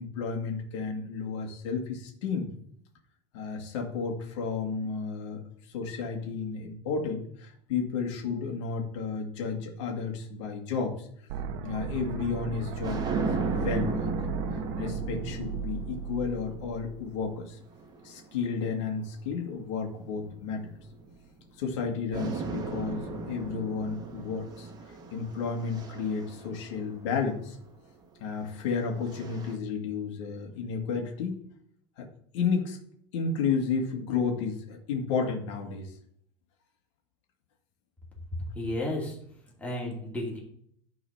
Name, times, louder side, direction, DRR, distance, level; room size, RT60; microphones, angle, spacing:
voice 1, 0.0-2.5 3.3-5.4 5.7-11.1 11.6-14.1 14.5-17.6 18.0-20.7 21.6-24.7 25.1-27.6 28.2-31.5 32.0-32.1 32.3-32.8 33.1-35.9, left 5 dB, 80° left, 2 dB, 2.0 m, -32 dB
sound 1, 11.3-17.3, right 6 dB, 65° right, 1.0 m, -36 dB
sound 2, 12.6-19.1 19.9-21.8 22.1-27.4 28.4-29.6, right 4 dB, 25° right, 1.2 m, -37 dB
voice 2, 38.3-39.2 39.6-40.4, left 1 dB, 10° left, -3 dB, 2.6 m, -33 dB
11.0 x 4.0 x 5.6 m, 0.67 s
supercardioid pair, 145°, 15 cm